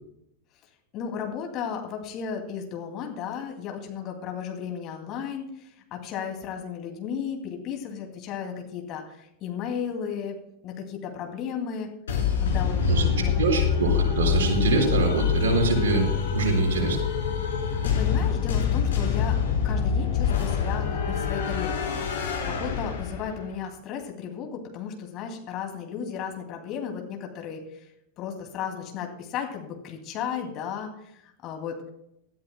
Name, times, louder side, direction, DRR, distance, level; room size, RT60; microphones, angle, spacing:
voice 1, 0.9-10.4 10.6-11.9 12.4-13.4 17.6-19.4 19.6-22.0 22.4-27.8 28.2-31.9, left 7 dB, 35° left, 3 dB, 2.6 m, -34 dB
sound 1, 12.1-23.5, left 7 dB, 65° left, 4.1 m, -26 dB
voice 2, 12.8-13.1 13.4-17.0, right 3 dB, 55° right, 0 dB, 5.2 m, -24 dB
19.5 x 13.5 x 2.3 m, 0.78 s
figure-of-eight pair, 90°, 0 cm